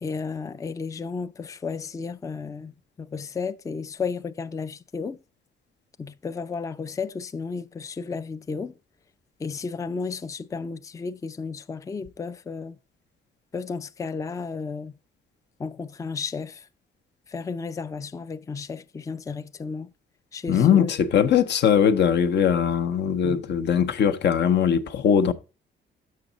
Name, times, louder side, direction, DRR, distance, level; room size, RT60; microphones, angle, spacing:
voice 1, 0.0-2.7 3.0-5.2 6.0-8.7 9.4-12.8 13.5-14.9 15.6-16.6 17.3-19.9 20.3-21.0 23.2-23.4, left 5 dB, 15° left, 0.4 m, -33 dB
voice 2, 20.5-25.3, left 8 dB, 60° left, 0.7 m, -20 dB
6.6 x 6.2 x 3.8 m
cardioid pair, 90°, 20 cm